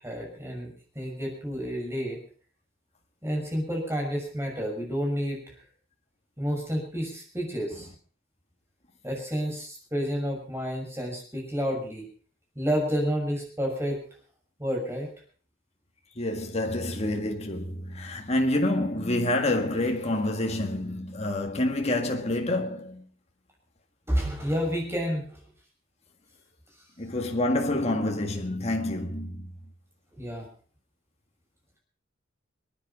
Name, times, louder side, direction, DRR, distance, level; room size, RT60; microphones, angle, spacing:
voice 1, 0.0-2.2 3.2-5.5 6.4-7.9 9.0-12.1 12.5-14.0 14.6-15.1 24.1-25.4 30.1-30.5, equal, 15° right, 6.4 m, -30 dB
voice 2, 16.2-23.1 27.0-29.5, left 1 dB, 35° left, 1.9 m, -27 dB
27.0 x 10.0 x 5.2 m
head